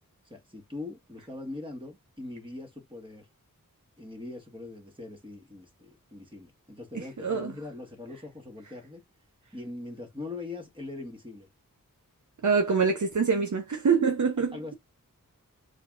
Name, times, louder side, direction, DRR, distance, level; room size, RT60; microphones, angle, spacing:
voice 1, 0.3-3.3 4.0-9.0 9.5-11.5 14.4-14.7, left 2 dB, 15° right, 1.6 m, -41 dB
voice 2, 6.9-7.5 12.4-14.6, right 5 dB, 55° right, 0.8 m, -25 dB
6.6 x 2.4 x 2.5 m
wide cardioid pair, 50°, 34 cm